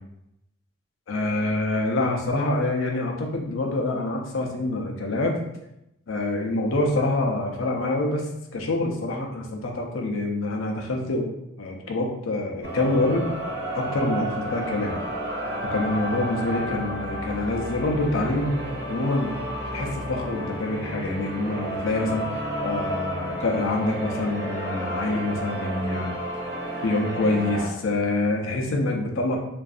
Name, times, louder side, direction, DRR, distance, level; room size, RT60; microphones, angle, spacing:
voice 1, 1.1-5.4 6.1-8.3 8.5-11.3 11.6-13.3 13.7-15.0 15.7-18.6 18.9-19.3 19.7-22.3 22.6-26.1 26.8-29.4, left 2 dB, 90° left, 1 dB, 0.5 m, -26 dB
sound 1, 12.6-27.7, right 1 dB, 55° right, 0.5 m, -31 dB
2.5 x 2.3 x 2.4 m, 0.85 s
head